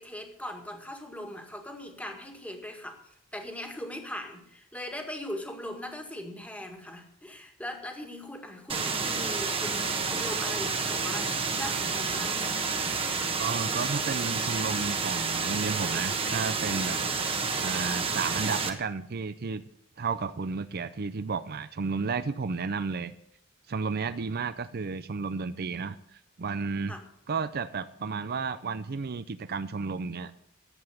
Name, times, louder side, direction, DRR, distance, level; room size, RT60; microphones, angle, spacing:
voice 1, 0.0-12.8 26.9-27.0, left 1 dB, 5° left, 3 dB, 1.8 m, -40 dB
sound 1, 8.7-18.7, right 4 dB, 30° right, 1.2 m, -29 dB
voice 2, 13.4-17.1 17.6-19.6 20.0-23.1 23.7-26.9 27.3-30.3, right 5 dB, 50° right, 13 dB, 0.5 m, -32 dB
11.0 x 7.9 x 8.4 m, 0.74 s
head